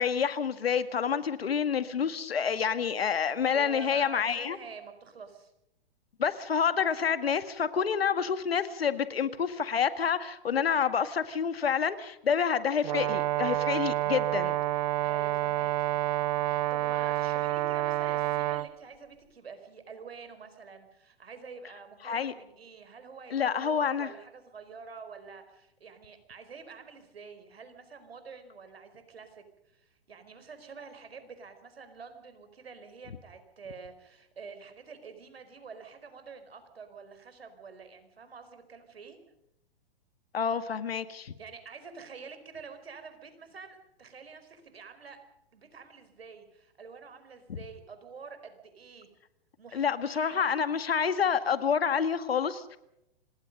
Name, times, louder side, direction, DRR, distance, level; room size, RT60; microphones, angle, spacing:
voice 1, 0.0-4.6 6.2-14.6 22.0-22.3 23.3-24.1 40.3-41.3 49.7-52.8, left 7 dB, 80° left, 12 dB, 1.9 m, -28 dB
voice 2, 1.7-2.1 3.5-5.5 12.5-12.8 15.0-16.0 16.4-29.4 29.7-39.2 41.4-45.2 45.5-49.1 49.6-50.5, right 5 dB, 80° right, 9 dB, 4.9 m, -47 dB
Brass instrument, 12.8-18.7, right 15 dB, 45° right, 0.8 m, -29 dB
26.5 x 20.0 x 5.4 m, 0.85 s
hypercardioid pair, 120°, 30 cm